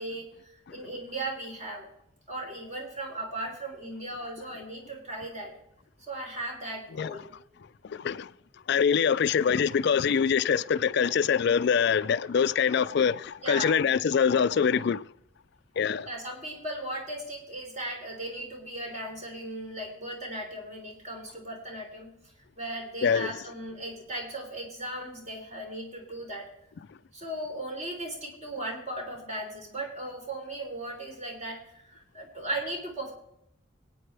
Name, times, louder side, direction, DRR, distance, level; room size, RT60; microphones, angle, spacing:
voice 1, 0.0-1.9 2.3-5.5 6.1-7.3 13.4-13.9 16.1-22.1 22.6-26.5 27.1-33.1, right 1 dB, 35° right, 3.5 m, -37 dB
voice 2, 7.9-8.3 8.7-15.0 15.8-16.1 23.0-23.3, left 7 dB, 55° left, 0.4 m, -24 dB
24.0 x 9.1 x 3.4 m
head